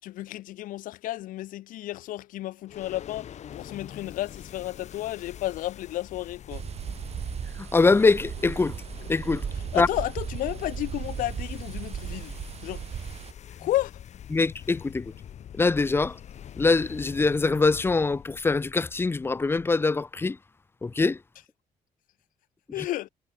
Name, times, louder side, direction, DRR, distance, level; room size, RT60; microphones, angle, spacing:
voice 1, 0.0-6.7 9.5-12.9 13.6-14.0 22.7-23.1, left 15 dB, 90° left, 2.7 m, -32 dB
sound 1, 2.7-20.0, left 9 dB, 55° left, 2.1 m, -45 dB
sound 2, 6.5-13.3, right 8 dB, 50° right, 2.4 m, -36 dB
voice 2, 7.6-8.8 9.1-9.4 9.8-9.9 14.3-15.1 15.6-16.2 16.6-20.4 20.8-21.2, left 3 dB, 15° left, 0.6 m, -23 dB
cardioid pair, 115°, 14 cm